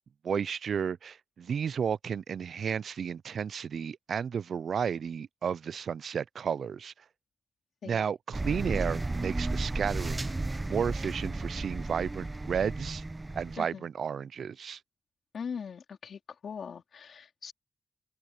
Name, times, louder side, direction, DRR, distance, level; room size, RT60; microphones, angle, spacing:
voice 1, 0.2-6.9 7.8-10.3 10.7-13.0 13.3-14.8, right 7 dB, 75° right, 0.4 m, -32 dB
sound 1, 8.3-13.6, right 2 dB, 20° right, 0.7 m, -33 dB
voice 2, 15.3-17.5, left 6 dB, 75° left, 3.7 m, -41 dB
open air
wide cardioid pair, 145°, 0 cm